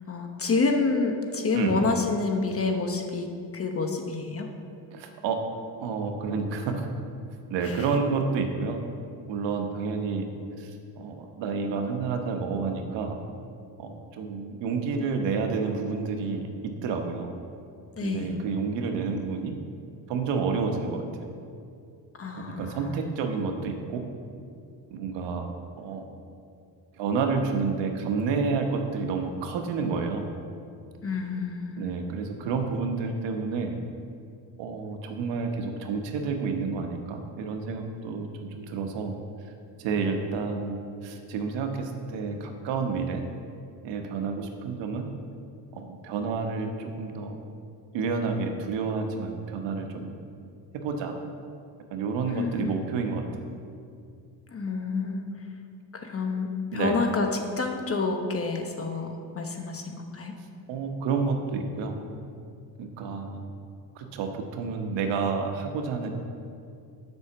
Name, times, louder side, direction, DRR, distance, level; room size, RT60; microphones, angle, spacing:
voice 1, 0.1-4.5 7.6-7.9 18.0-18.4 22.2-23.0 31.0-31.7 52.3-52.8 54.5-55.3 55.9-60.3, left 3 dB, 35° left, 4 dB, 1.1 m, -28 dB
voice 2, 4.9-5.4 5.8-6.9 7.5-8.8 9.3-10.3 10.6-13.2 13.8-16.5 16.8-17.3 18.0-19.5 20.1-21.3 22.4-24.0 24.9-26.1 27.0-30.3 31.8-33.8 34.6-39.1 39.4-39.5 39.8-43.2 43.8-45.1 45.7-47.4 47.9-50.1 50.7-51.1 51.9-53.2 56.7-57.0 60.7-62.0 62.8-63.5 63.9-66.1, right 4 dB, 90° right, 4 dB, 1.1 m, -30 dB
8.2 x 5.6 x 6.8 m, 2.5 s
cardioid pair, 95°, 42 cm